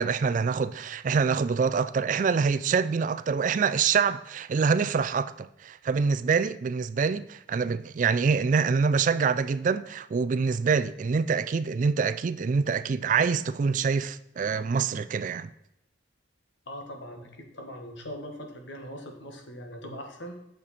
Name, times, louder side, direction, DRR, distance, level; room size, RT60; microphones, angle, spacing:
voice 1, 0.0-15.5, right 5 dB, 40° right, 0.3 m, -25 dB
voice 2, 16.7-20.4, equal, 70° left, 1.5 m, -41 dB
8.6 x 6.7 x 4.2 m
head